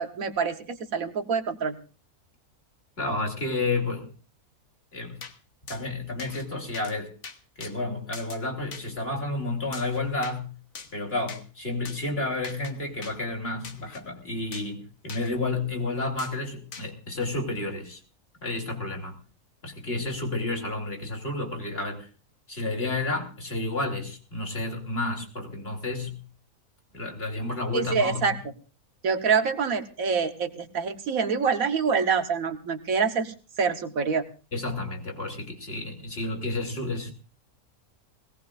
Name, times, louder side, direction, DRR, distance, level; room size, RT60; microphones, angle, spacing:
voice 1, 0.0-1.8 27.7-28.4 29.0-34.3, right 5 dB, 75° right, 7 dB, 1.7 m, -26 dB
voice 2, 3.0-4.1 4.9-5.2 5.7-7.1 7.6-10.5 10.9-18.0 18.4-19.2 19.6-22.1 22.5-26.2 26.9-28.4 34.5-37.1, left 2 dB, 45° left, 2 dB, 3.2 m, -31 dB
sound 1, 5.2-5.4 5.7-5.8 6.2-6.5 6.7-6.9 7.2-7.7 8.1-8.4 8.7-8.9 9.7-10.4 10.8-10.9 11.3-11.4 11.9-12.0 12.4-12.7 13.0-13.2 13.6-14.0 14.5-14.7 15.1-15.3 16.2-16.3 16.7-16.9, left 5 dB, 70° left, 1.6 m, -42 dB
20.5 x 17.5 x 2.5 m, 0.37 s
omnidirectional pair, 1.5 m